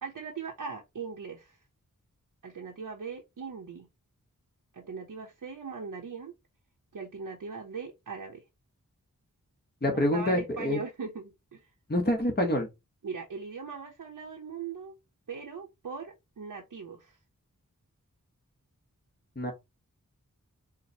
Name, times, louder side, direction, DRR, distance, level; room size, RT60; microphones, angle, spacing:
voice 1, 0.0-1.6 2.4-3.9 4.7-6.3 6.9-8.4 9.9-11.7 13.0-15.0 15.3-17.2, right 5 dB, 75° right, 0.8 m, -40 dB
voice 2, 9.8-10.8 11.9-12.7 19.4-19.5, left 1 dB, 30° left, 1.0 m, -26 dB
4.6 x 2.1 x 2.7 m
wide cardioid pair, 45°, 33 cm